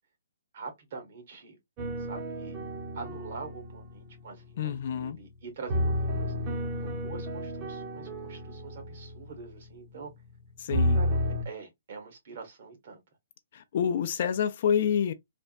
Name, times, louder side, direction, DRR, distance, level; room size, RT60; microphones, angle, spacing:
voice 1, 0.5-1.6 2.0-2.6 2.9-6.3 6.8-10.1 10.9-13.0, right 4 dB, 55° right, 1.3 m, -44 dB
sound 1, 1.8-5.1 5.7-10.3 10.7-11.4, equal, 30° right, 0.8 m, -32 dB
voice 2, 4.6-5.2 10.6-11.0 13.5-15.1, left 8 dB, 50° left, 0.4 m, -28 dB
3.3 x 2.1 x 2.5 m
hypercardioid pair, 150°, 0 cm